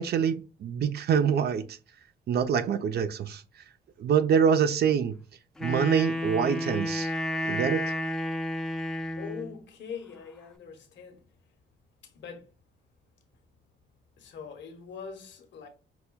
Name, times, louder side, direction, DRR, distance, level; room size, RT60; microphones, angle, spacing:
voice 1, 0.0-1.8 2.3-3.4 4.0-5.1 5.6-7.1 7.5-7.8, right 7 dB, 55° right, 0.5 m, -25 dB
Wind instrument woodwind instrument, 5.6-9.6, left 1 dB, 5° left, 0.6 m, -31 dB
voice 2, 9.2-11.2 12.0-12.5 14.2-15.7, left 6 dB, 65° left, 1.0 m, -42 dB
5.9 x 2.2 x 2.2 m
cardioid pair, 90°, 20 cm